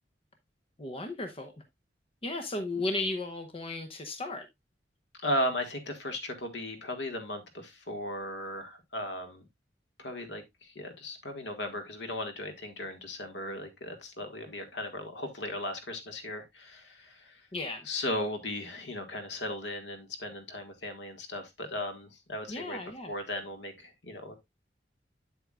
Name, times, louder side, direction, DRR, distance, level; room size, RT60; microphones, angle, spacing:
voice 1, 0.8-1.5 2.2-4.5 17.5-17.9 22.5-23.1, left 2 dB, 30° left, 0.8 m, -35 dB
voice 2, 5.2-9.5 10.0-17.4 17.8-22.8 23.1-24.4, left 1 dB, 75° left, 1.7 m, -36 dB
8.0 x 8.0 x 2.4 m
head